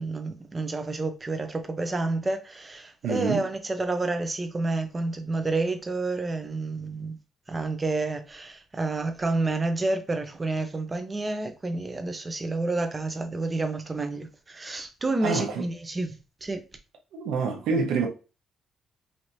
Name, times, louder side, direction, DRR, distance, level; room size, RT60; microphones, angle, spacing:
voice 1, 0.0-7.2 7.5-16.6, right 2 dB, 25° right, 0.9 m, -29 dB
voice 2, 3.0-3.5 15.2-15.5 17.1-18.1, right 4 dB, 85° right, 1.1 m, -26 dB
4.9 x 2.9 x 2.7 m
cardioid pair, 90°, 0 cm